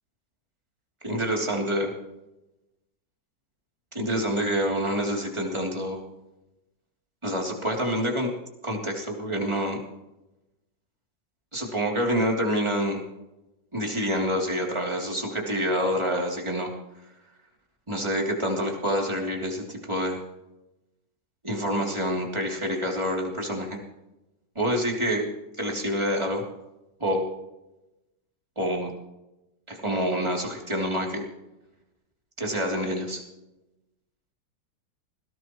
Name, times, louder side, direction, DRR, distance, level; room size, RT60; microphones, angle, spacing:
voice 1, 1.0-1.9 3.9-6.0 7.2-8.3 8.6-9.8 11.5-13.0 13.7-16.7 17.9-20.2 21.4-23.8 24.5-25.3 25.6-26.4 27.0-27.2 28.6-28.9 29.7-31.3 32.4-33.2, equal, 15° right, -1 dB, 3.1 m, -27 dB
20.5 x 17.0 x 3.1 m, 0.95 s
omnidirectional pair, 2.0 m